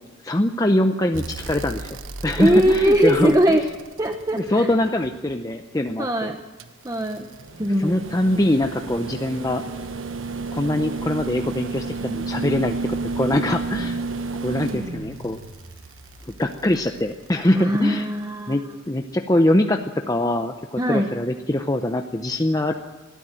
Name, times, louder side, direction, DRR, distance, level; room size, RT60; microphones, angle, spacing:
voice 1, 0.2-3.4 4.3-6.3 7.8-9.6 10.5-14.0 14.4-15.4 16.3-18.1 18.5-22.7, left 1 dB, 20° left, 5 dB, 0.7 m, -23 dB
sound 1, 1.1-5.3 6.6-17.8 19.3-19.4, right 3 dB, 80° right, 1.2 m, -32 dB
voice 2, 2.4-3.7 4.0-4.7 6.0-6.4 6.8-7.3 7.6-8.0 13.8-14.0 17.6-18.6 20.8-21.1, equal, 15° right, 5 dB, 0.9 m, -20 dB
21.0 x 14.0 x 8.9 m, 1.2 s
head